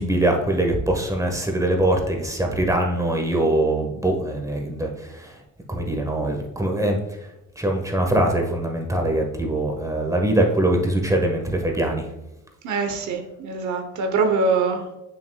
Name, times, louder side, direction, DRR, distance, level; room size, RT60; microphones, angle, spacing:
voice 1, 0.0-5.4 5.7-7.0 7.6-12.1, right 1 dB, 10° right, 2 dB, 1.3 m, -22 dB
voice 2, 12.6-15.0, right 4 dB, 70° right, 5 dB, 0.9 m, -23 dB
7.0 x 6.3 x 2.3 m, 0.94 s
cardioid pair, 90°, 30 cm